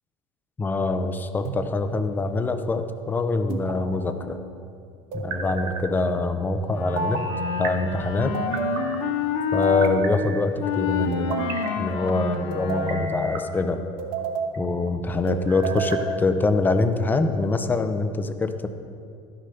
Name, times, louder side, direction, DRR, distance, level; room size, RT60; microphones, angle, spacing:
voice 1, 0.6-4.4 5.1-7.3 7.6-8.4 9.5-11.4 11.8-13.8 14.6-18.7, left 3 dB, 15° left, 8 dB, 0.5 m, -24 dB
sound 1, 1.4-2.1 3.5-4.3 5.1-5.9 7.0-7.7 8.3-9.0 9.6-10.5 11.1-11.8 12.5-13.4 14.0-14.6 15.3-16.1, right 4 dB, 80° right, 1.1 m, -31 dB
Wind instrument woodwind instrument, 6.7-9.9 10.6-13.3, left 6 dB, 60° left, 1.1 m, -28 dB
12.0 x 6.1 x 5.7 m, 2.4 s
cardioid pair, 135°, 12 cm